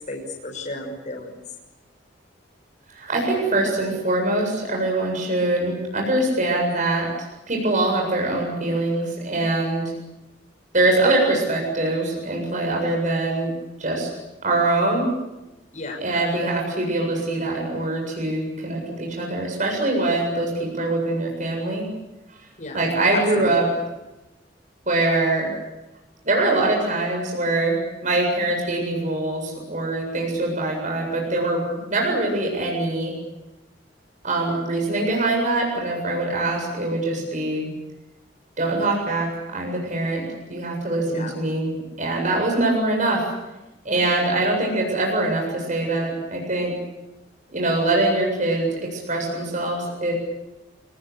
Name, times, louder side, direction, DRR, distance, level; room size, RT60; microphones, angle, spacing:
voice 1, 0.1-1.4 9.8-10.1 15.7-16.0 22.6-22.8 23.1-23.5 41.0-41.3, left 2 dB, 40° left, 1 dB, 6.5 m, -33 dB
voice 2, 2.9-7.1 7.5-9.8 10.7-13.5 13.8-14.1 14.4-15.1 16.0-21.9 22.7-23.7 24.9-25.5 26.2-33.1 34.2-37.7 38.6-40.2 40.5-43.3 43.8-46.7 47.5-50.1, right 2 dB, 45° right, 0 dB, 7.9 m, -23 dB
29.0 x 21.0 x 8.6 m, 1.0 s
head